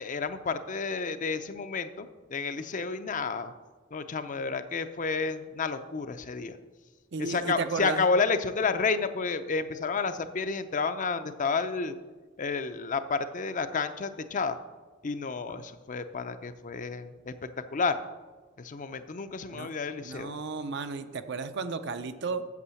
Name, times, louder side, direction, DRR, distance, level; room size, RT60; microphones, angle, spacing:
voice 1, 0.0-3.5 3.9-6.6 7.2-12.0 12.4-14.6 15.0-17.3 17.7-18.0 18.6-20.4, left 4 dB, 40° left, 10 dB, 0.5 m, -30 dB
voice 2, 7.1-8.0 19.5-19.7 20.0-22.5, right 4 dB, 60° right, 10 dB, 0.6 m, -33 dB
8.5 x 7.1 x 7.0 m, 1.3 s
head